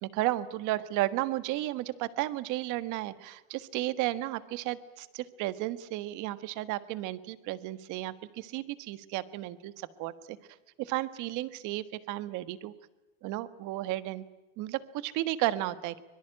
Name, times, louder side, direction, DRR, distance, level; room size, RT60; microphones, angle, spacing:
voice 1, 0.0-10.4 10.8-12.7 13.2-14.2 14.6-16.0, right 16 dB, 45° right, 14 dB, 1.6 m, -33 dB
25.0 x 23.0 x 9.0 m, 1.1 s
supercardioid pair, 155°, 42 cm